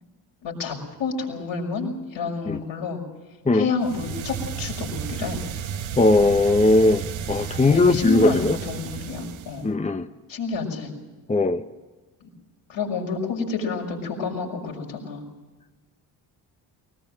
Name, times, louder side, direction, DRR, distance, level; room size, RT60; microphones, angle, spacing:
voice 1, 0.4-3.0 3.5-5.4 7.5-9.6 10.3-10.9 12.2-12.3 12.7-15.2, left 4 dB, 65° left, 0 dB, 6.3 m, -29 dB
sound 1, 3.8-9.7, right 8 dB, 75° right, 1.5 m, -33 dB
voice 2, 6.0-8.6 9.6-10.1 11.3-11.6, left 2 dB, 15° left, 8 dB, 1.0 m, -19 dB
20.5 x 20.5 x 7.7 m, 1.3 s
supercardioid pair, 55°, 48 cm